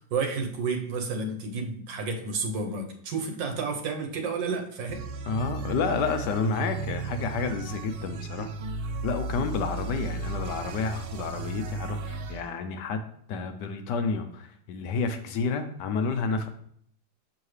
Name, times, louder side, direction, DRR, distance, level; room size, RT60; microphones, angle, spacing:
voice 1, 0.1-5.0, right 4 dB, 70° right, 3 dB, 1.6 m, -31 dB
sound 1, 4.9-12.4, right 4 dB, 85° right, 1.6 m, -35 dB
voice 2, 5.3-8.5 9.0-13.0 13.3-16.5, left 4 dB, 70° left, 8 dB, 1.1 m, -30 dB
7.2 x 6.3 x 3.2 m, 0.65 s
omnidirectional pair, 2.2 m